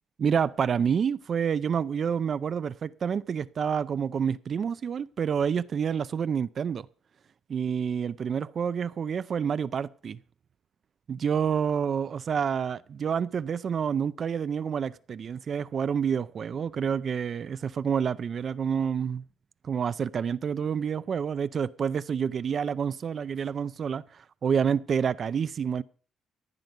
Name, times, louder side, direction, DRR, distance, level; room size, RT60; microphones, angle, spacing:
voice 1, 0.2-6.9 7.5-10.2 11.1-19.2 19.6-25.8, right 7 dB, 50° right, 0.5 m, -28 dB
14.5 x 5.3 x 9.2 m
cardioid pair, 90°, 0 cm